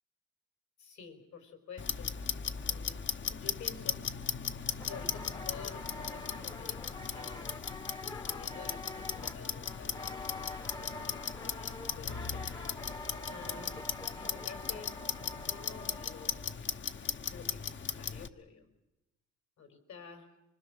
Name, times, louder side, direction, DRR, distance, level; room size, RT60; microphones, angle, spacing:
voice 1, 0.8-2.1 2.6-3.0 3.3-4.0 4.9-7.5 8.3-16.5 17.2-18.6 19.6-20.3, left 6 dB, 70° left, 6 dB, 4.8 m, -50 dB
Clock, 1.8-18.3, left 6 dB, 40° left, 1.0 m, -38 dB
sound 1, 4.8-16.5, left 2 dB, 15° left, 1.0 m, -46 dB
24.5 x 24.5 x 6.4 m, 0.93 s
cardioid pair, 90°, 30 cm